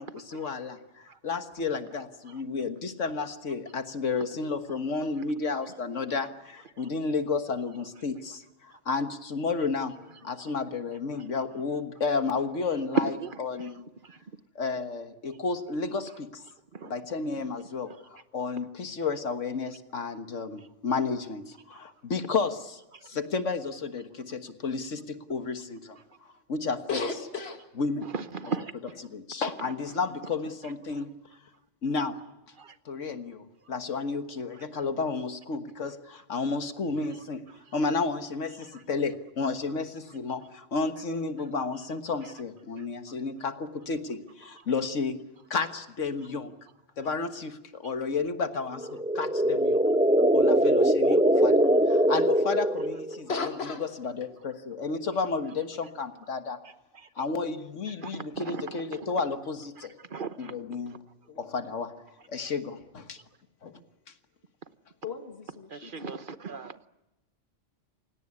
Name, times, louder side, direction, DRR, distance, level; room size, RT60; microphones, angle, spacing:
voice 1, 0.0-9.9 10.2-13.1 13.4-13.8 14.5-16.4 16.8-26.0 26.5-27.0 27.8-28.1 29.0-31.1 31.8-32.2 32.8-37.4 37.7-45.2 45.5-46.5 47.0-49.9 50.3-53.4 53.8-56.6 57.1-59.9 60.4-61.0 61.4-61.9 62.3-63.2 63.6-63.7, left 4 dB, 75° left, 9 dB, 1.8 m, -32 dB
voice 2, 13.0-13.7 14.0-14.2 16.7-16.9 28.1-28.7 32.6-32.7 42.7-42.8 58.0-59.1 60.1-60.5 65.7-66.9, right 4 dB, 45° right, 12 dB, 1.1 m, -34 dB
voice 3, 26.9-27.6 28.4-28.5 53.3-53.9 57.6-58.0 61.3-61.5 65.0-66.3, left 4 dB, 55° left, 6 dB, 2.3 m, -36 dB
sound 1, 48.8-53.2, right 1 dB, 5° right, 0.9 m, -22 dB
28.0 x 17.5 x 9.7 m, 0.97 s
omnidirectional pair, 1.3 m